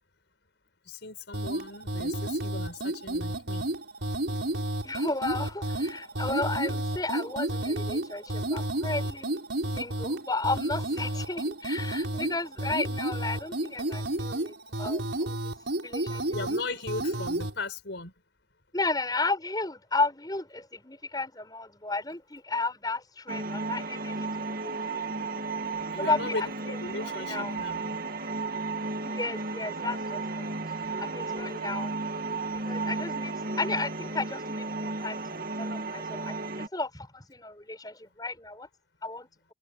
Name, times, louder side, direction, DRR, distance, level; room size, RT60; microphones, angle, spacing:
voice 1, 0.8-3.7 16.3-18.1 25.7-27.8, left 3 dB, 75° left, 4.7 m, -37 dB
sound 1, 1.3-17.5, right 1 dB, 75° right, 5.4 m, -31 dB
voice 2, 4.8-9.4 9.7-15.5 15.8-16.4 18.7-25.0 26.0-27.6 29.0-31.9 32.7-38.7 39.0-39.3, left 3 dB, 20° left, 7.0 m, -34 dB
sound 2, 23.3-36.7, right 3 dB, 50° right, 2.1 m, -34 dB
head